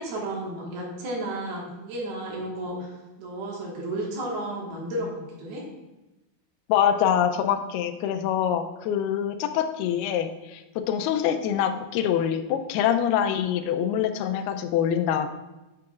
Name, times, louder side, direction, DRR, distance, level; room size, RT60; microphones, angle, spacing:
voice 1, 0.0-2.9 3.2-5.6, right 1 dB, 75° right, -2 dB, 3.4 m, -32 dB
voice 2, 6.7-15.3, left 9 dB, 85° left, 9 dB, 2.5 m, -25 dB
7.9 x 7.7 x 2.4 m, 1.0 s
omnidirectional pair, 4.5 m